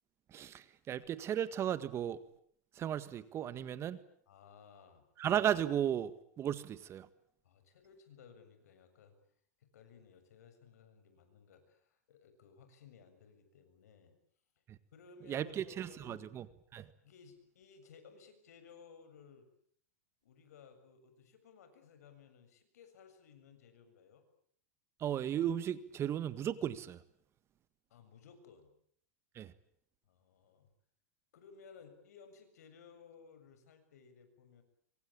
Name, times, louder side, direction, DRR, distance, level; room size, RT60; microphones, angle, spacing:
voice 1, 0.3-2.2 2.7-4.0 5.2-7.1 14.7-14.8 15.3-16.5 16.7-16.9 25.0-27.0 29.3-29.5, right 10 dB, 30° right, 14 dB, 1.7 m, -35 dB
voice 2, 4.3-5.1 7.4-9.2 9.6-14.2 14.9-16.3 17.0-19.5 20.2-24.2 27.9-28.7 30.1-30.7 31.3-34.6, left 6 dB, 80° left, 8 dB, 7.1 m, -59 dB
26.0 x 24.5 x 8.7 m, 0.65 s
hypercardioid pair, 120°, 8 cm